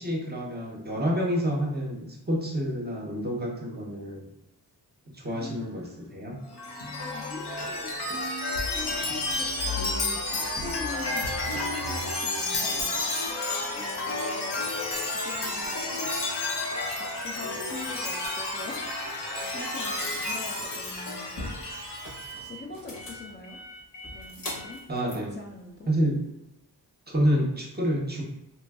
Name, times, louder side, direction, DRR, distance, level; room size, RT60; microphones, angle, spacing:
voice 1, 0.0-4.3 5.1-6.4 24.9-25.4 25.9-26.2 27.1-28.2, equal, 25° right, -1 dB, 0.6 m, -28 dB
voice 2, 5.2-6.3 7.0-7.9 8.6-12.9 13.7-14.6 15.0-16.2 16.9-18.9 19.2-21.5 22.4-23.6 24.1-25.9, left 3 dB, 30° left, -3 dB, 0.4 m, -43 dB
Chime, 6.5-22.4, left 2 dB, 75° left, 0.7 m, -31 dB
sound 1, 10.2-26.2, left 1 dB, 55° left, 0.9 m, -45 dB
3.0 x 2.5 x 2.3 m, 0.88 s
wide cardioid pair, 70°, 41 cm